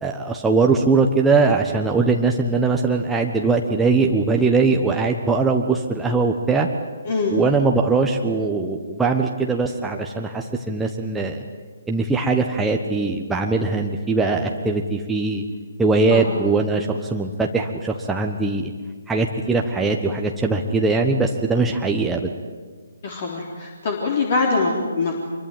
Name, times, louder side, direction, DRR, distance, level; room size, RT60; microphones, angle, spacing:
voice 1, 0.0-6.7 7.3-11.4 11.9-15.4 15.8-18.7 19.1-22.3, right 3 dB, 5° right, 1 dB, 1.3 m, -21 dB
voice 2, 7.1-7.4 16.1-16.2 23.0-25.2, left 3 dB, 40° left, 0 dB, 3.8 m, -23 dB
25.5 x 23.0 x 9.2 m, 1.5 s
figure-of-eight pair, 140°, 0 cm